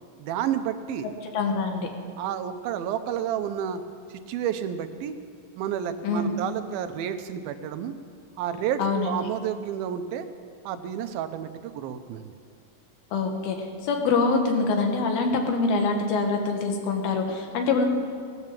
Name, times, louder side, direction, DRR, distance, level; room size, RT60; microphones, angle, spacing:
voice 1, 0.2-1.1 2.2-3.8 4.1-5.1 5.6-7.9 8.4-10.3 10.7-12.3, right 9 dB, 85° right, 9 dB, 2.6 m, -30 dB
voice 2, 1.3-1.9 6.0-6.3 8.8-9.1 13.1-17.9, left 4 dB, 85° left, 3 dB, 3.4 m, -25 dB
17.5 x 11.0 x 7.5 m, 2.2 s
omnidirectional pair, 4.2 m